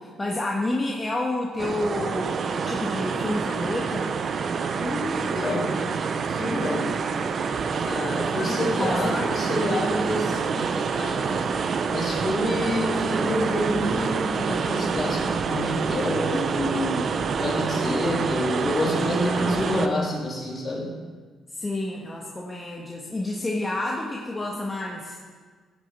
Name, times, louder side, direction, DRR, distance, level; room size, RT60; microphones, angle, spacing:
voice 1, 0.0-4.2 8.3-9.3 19.2-19.7 21.5-25.2, left 2 dB, 20° left, -2 dB, 1.4 m, -30 dB
sound 1, 1.6-19.9, right 5 dB, 50° right, 0.8 m, -27 dB
voice 2, 4.7-5.9 6.2-6.9 7.8-11.5 11.9-17.1 17.4-20.9, left 1 dB, 40° left, -3 dB, 3.3 m, -28 dB
16.5 x 6.4 x 5.5 m, 1.5 s
cardioid pair, 90°, 0 cm